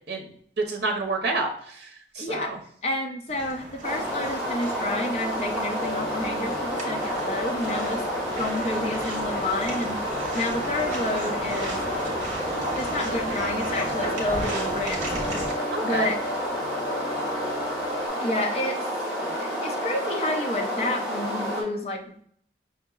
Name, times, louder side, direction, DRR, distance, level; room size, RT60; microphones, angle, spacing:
voice 1, 0.6-1.9 2.2-2.6 15.7-16.1, right 3 dB, 65° right, 2 dB, 0.7 m, -28 dB
voice 2, 2.2-2.5 2.8-8.0 8.3-10.0 10.3-11.8 12.7-15.0 15.8-16.2 18.2-18.8 19.4-22.2, left 1 dB, 35° left, 1 dB, 0.6 m, -30 dB
sound 1, 3.3-15.5, right 1 dB, 40° right, 1.1 m, -37 dB
sound 2, 3.8-21.6, equal, 5° right, 1.4 m, -30 dB
sound 3, 5.8-18.1, left 1 dB, 80° left, 1.1 m, -36 dB
5.6 x 2.9 x 2.3 m, 0.63 s
head